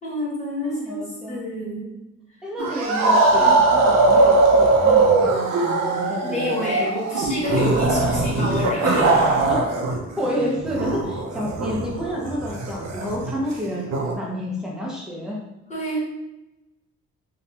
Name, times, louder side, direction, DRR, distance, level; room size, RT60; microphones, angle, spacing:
voice 1, 0.0-2.0 3.3-3.6 6.2-9.3 15.7-16.0, left 1 dB, 25° left, -7 dB, 1.3 m, -28 dB
voice 2, 0.6-1.4 2.4-6.6 9.5-9.6 10.2-15.4, equal, ahead, -4 dB, 0.7 m, -29 dB
sound 1, 2.6-10.0 10.2-14.1, right 3 dB, 60° right, 0.6 m, -20 dB
2.8 x 2.3 x 2.7 m, 0.96 s
cardioid pair, 90°, 30 cm